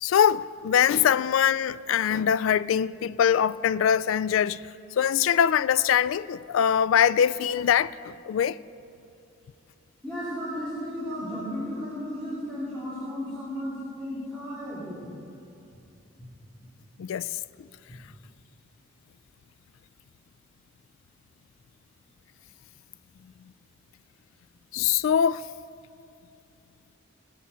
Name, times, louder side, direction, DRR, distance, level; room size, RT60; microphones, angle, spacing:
voice 1, 0.0-4.6 4.9-8.6 17.0-17.3 17.6-17.7 24.7-25.5, left 8 dB, 80° left, 0.3 m, -23 dB
voice 2, 10.0-15.1, equal, 5° left, 3.5 m, -34 dB
19.0 x 7.5 x 5.6 m
head